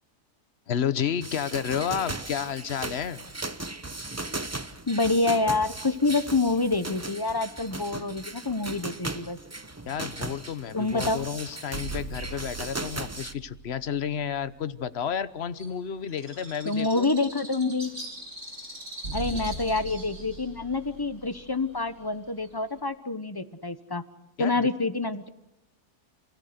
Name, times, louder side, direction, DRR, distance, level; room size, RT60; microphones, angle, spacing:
voice 1, 0.7-3.2 9.8-17.1 19.3-19.5 24.4-24.6, left 8 dB, 45° left, 14 dB, 1.1 m, -31 dB
sound 1, 1.2-13.3, right 2 dB, 15° right, 0.5 m, -37 dB
voice 2, 4.9-9.4 10.7-11.2 16.6-17.9 19.1-24.0 24.4-25.3, left 3 dB, 20° left, 11 dB, 0.8 m, -27 dB
sound 2, 11.7-15.2 15.6-15.7 19.0-22.6, right 3 dB, 90° right, 7.1 m, -41 dB
Bird, 15.6-22.8, right 1 dB, 45° right, 6.5 m, -43 dB
28.0 x 16.5 x 8.0 m, 0.93 s
omnidirectional pair, 1.7 m